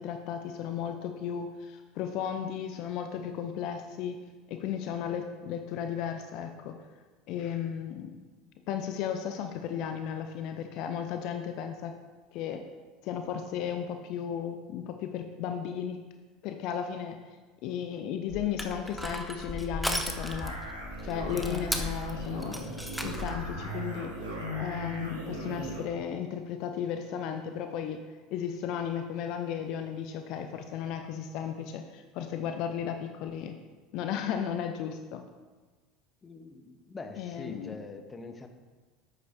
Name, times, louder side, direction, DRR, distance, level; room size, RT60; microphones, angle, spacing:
voice 1, 0.0-4.2 4.5-6.8 7.3-8.2 8.7-11.9 12.3-12.6 13.0-16.0 16.4-20.6 21.0-22.7 23.0-33.6 33.9-35.2 37.2-37.8, left 8 dB, 55° left, 6 dB, 0.6 m, -35 dB
Crushing, 18.3-23.5, equal, ahead, 1.0 m, -36 dB
sound 1, 20.1-25.9, equal, 85° right, 2.2 m, -38 dB
voice 2, 36.2-38.5, left 3 dB, 25° left, 6 dB, 1.0 m, -44 dB
10.5 x 8.3 x 2.8 m, 1.3 s
figure-of-eight pair, 75°, 0 cm